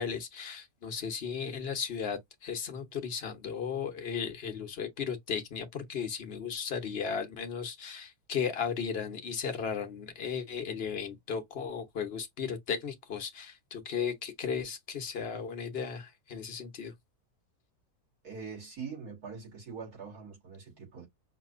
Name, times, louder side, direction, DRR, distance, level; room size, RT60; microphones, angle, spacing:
voice 1, 0.0-16.9, left 6 dB, 45° left, 1.0 m, -35 dB
voice 2, 18.2-21.1, right 5 dB, 80° right, 3.6 m, -43 dB
5.7 x 2.8 x 2.4 m
omnidirectional pair, 1.6 m